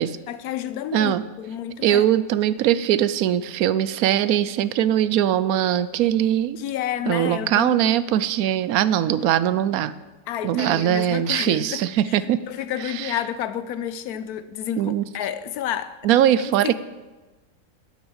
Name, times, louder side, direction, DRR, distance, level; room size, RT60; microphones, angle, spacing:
voice 1, 0.3-2.1 6.6-8.0 10.3-16.0 16.6-16.7, left 10 dB, 90° left, 1.2 m, -30 dB
voice 2, 0.9-1.2 1.8-6.6 7.1-9.9 10.4-12.4 12.8-13.2 14.8-15.0 16.0-16.7, right 11 dB, 80° right, 1.0 m, -21 dB
9.7 x 8.1 x 7.9 m
omnidirectional pair, 1.6 m